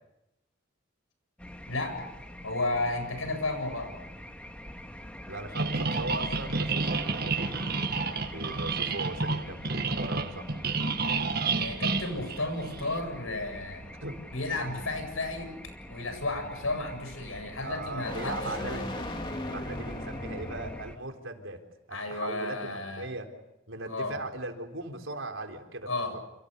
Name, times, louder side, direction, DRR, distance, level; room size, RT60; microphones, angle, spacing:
sound 1, 1.4-21.0, equal, 5° left, 1.8 m, -45 dB
voice 1, 1.7-2.1 2.4-3.9 11.5-13.9 14.3-15.5 15.9-18.9 19.5-19.6 21.9-23.1 23.9-24.2 25.9-26.2, left 2 dB, 80° left, 7 dB, 8.0 m, -33 dB
voice 2, 5.3-7.6 8.3-10.5 12.1-12.2 14.0-14.2 14.7-14.8 17.6-19.1 19.5-21.6 21.9-23.3 23.7-26.2, right 2 dB, 70° right, 4 dB, 4.0 m, -39 dB
sound 2, 5.5-13.0, right 4 dB, 50° right, 1.7 m, -30 dB
sound 3, 6.5-21.0, left 1 dB, 25° left, 2.9 m, -42 dB
28.5 x 28.5 x 6.9 m, 0.89 s
head